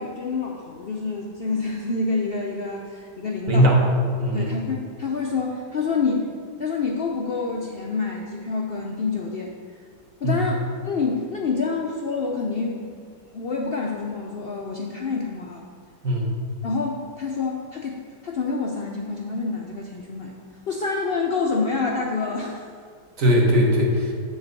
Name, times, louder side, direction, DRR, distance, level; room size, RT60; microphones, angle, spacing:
voice 1, 0.0-3.8 4.3-6.3 6.6-9.5 10.2-13.0 13.3-15.6 16.6-20.3 20.7-22.7, left 4 dB, 80° left, 0 dB, 0.5 m, -27 dB
voice 2, 3.5-3.8 4.2-4.5 10.2-10.4 16.0-16.3 23.2-24.1, equal, 55° right, 0 dB, 1.5 m, -19 dB
7.6 x 4.0 x 6.7 m, 2.1 s
omnidirectional pair, 1.8 m